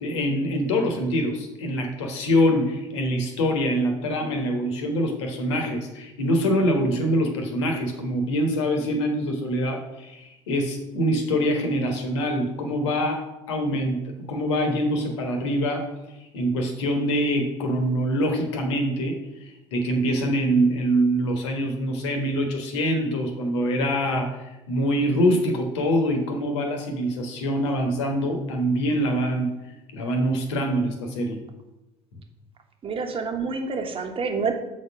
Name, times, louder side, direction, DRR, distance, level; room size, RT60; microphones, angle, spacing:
voice 1, 0.0-14.0 14.3-15.9 16.3-29.5 29.9-31.4, equal, 75° left, 4 dB, 1.3 m, -24 dB
voice 2, 32.8-34.6, right 5 dB, 40° right, 4 dB, 1.3 m, -27 dB
7.0 x 4.3 x 5.9 m, 0.96 s
figure-of-eight pair, 60°, 15 cm